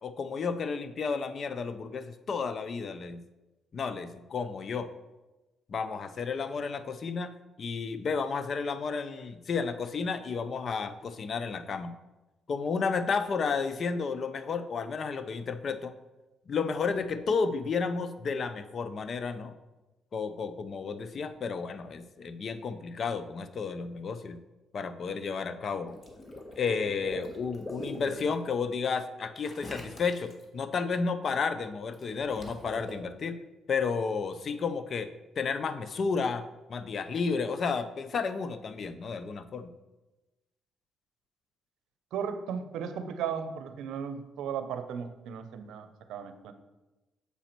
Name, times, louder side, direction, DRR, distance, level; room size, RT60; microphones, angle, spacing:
voice 1, 0.0-3.2 3.7-4.9 5.7-12.0 12.5-15.9 16.5-19.5 20.1-24.4 24.7-26.0 26.6-33.4 33.7-35.1 35.4-36.4 36.7-39.7, left 5 dB, 50° left, 11 dB, 0.5 m, -32 dB
Water / Liquid, 25.9-28.3 29.4-30.4 31.9-32.9, left 1 dB, 25° left, 1.4 m, -41 dB
voice 2, 42.1-46.5, right 7 dB, 85° right, 10 dB, 0.6 m, -36 dB
6.9 x 5.0 x 4.4 m, 1.1 s
cardioid pair, 90°, 0 cm